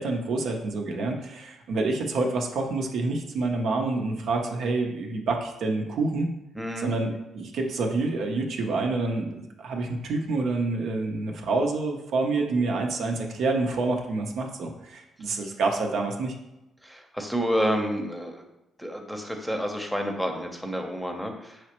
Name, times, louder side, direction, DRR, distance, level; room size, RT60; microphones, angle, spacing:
voice 1, 0.0-6.3 6.8-16.3, right 3 dB, 70° right, 2 dB, 0.6 m, -27 dB
voice 2, 6.5-6.9 16.8-18.4 18.8-21.6, equal, ahead, 3 dB, 0.7 m, -29 dB
4.9 x 3.1 x 2.9 m, 0.93 s
supercardioid pair, 60°, 0 cm